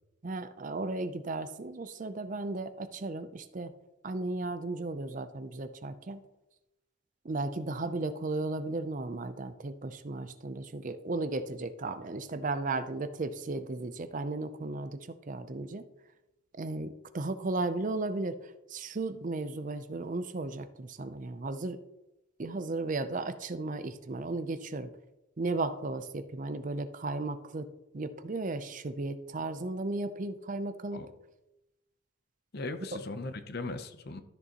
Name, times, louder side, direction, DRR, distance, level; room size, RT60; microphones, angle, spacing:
voice 1, 0.2-3.7 4.0-6.2 7.2-15.9 16.6-21.8 22.4-24.9 25.4-27.7 27.9-31.0 32.8-33.0, right 2 dB, 40° right, 11 dB, 0.5 m, -35 dB
voice 2, 32.5-34.2, left 2 dB, 50° left, 10 dB, 0.7 m, -38 dB
13.0 x 6.8 x 2.9 m, 0.96 s
head